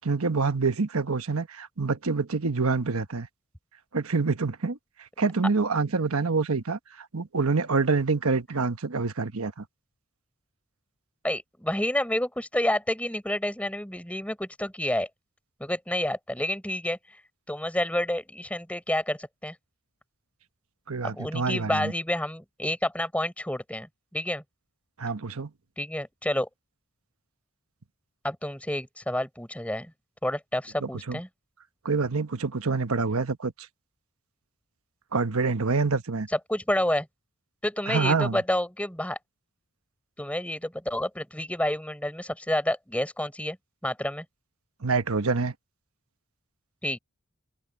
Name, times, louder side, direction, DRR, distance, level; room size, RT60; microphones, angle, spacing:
voice 1, 0.0-3.3 3.9-4.8 5.2-9.5 20.9-21.9 25.0-25.5 30.8-31.2 31.8-33.5 35.1-36.3 37.9-38.4 44.8-45.5, right 4 dB, 75° right, 1.1 m, -26 dB
voice 2, 11.2-15.1 15.6-17.0 17.5-19.5 21.0-24.4 25.8-26.5 28.2-29.9 30.2-31.3 36.3-37.1 37.6-39.2 40.2-43.6 43.8-44.2 46.8-47.0, left 1 dB, 5° left, 4.9 m, -29 dB
open air
head